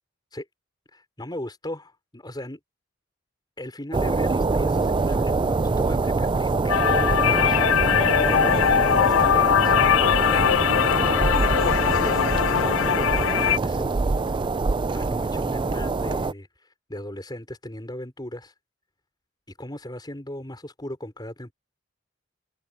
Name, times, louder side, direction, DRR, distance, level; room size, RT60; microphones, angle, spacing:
voice 1, 0.9-2.6 3.6-7.9 8.2-8.7 9.0-10.6 11.0-14.4 14.9-18.5 19.5-21.5, left 1 dB, 20° left, 5.4 m, -38 dB
sound 1, 3.9-16.3, right 3 dB, 25° right, 0.4 m, -24 dB
sound 2, 6.7-13.6, left 10 dB, 85° left, 0.3 m, -21 dB
head